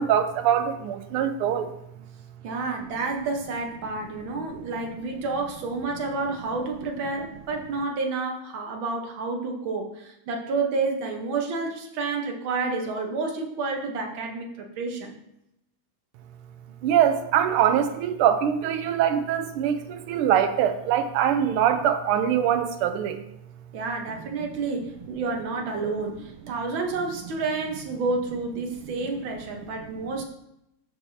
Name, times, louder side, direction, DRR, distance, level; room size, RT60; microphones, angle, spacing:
voice 1, 0.0-1.7 16.8-23.2, right 9 dB, 90° right, 9 dB, 1.6 m, -23 dB
voice 2, 2.4-15.2 23.7-30.2, right 3 dB, 70° right, 2 dB, 1.8 m, -30 dB
14.0 x 4.7 x 2.7 m, 0.82 s
omnidirectional pair, 2.4 m